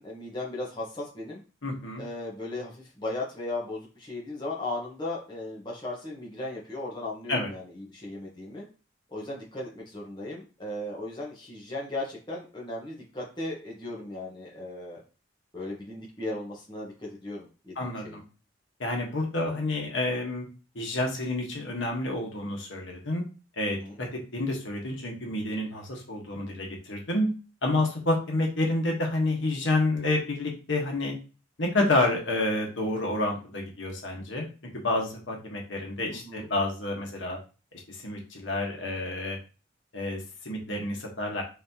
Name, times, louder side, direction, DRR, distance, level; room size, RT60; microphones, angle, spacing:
voice 1, 0.0-1.4 2.0-8.6 9.1-15.0 15.5-18.2 23.8-24.0 36.1-36.5, left 2 dB, 25° left, -4 dB, 1.1 m, -36 dB
voice 2, 1.6-2.0 7.3-7.5 17.8-18.2 18.8-20.5 20.7-23.2 23.6-27.3 27.6-31.1 31.6-37.4 37.9-39.4 39.9-41.4, left 2 dB, 90° left, 0 dB, 1.2 m, -29 dB
4.1 x 3.3 x 2.8 m, 0.34 s
head